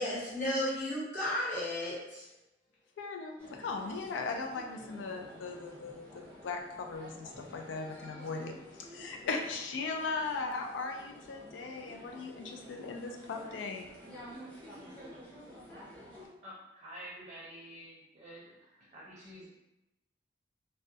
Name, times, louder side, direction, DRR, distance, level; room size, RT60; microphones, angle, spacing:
voice 1, 0.0-2.3, left 1 dB, 45° left, -9 dB, 1.0 m, -33 dB
voice 2, 3.0-13.9, left 4 dB, 85° left, 3 dB, 0.3 m, -38 dB
sound 1, 3.4-16.3, equal, 10° left, 0.6 m, -51 dB
voice 3, 16.4-19.4, equal, 35° right, -7 dB, 0.5 m, -49 dB
2.3 x 2.0 x 2.6 m, 0.94 s
head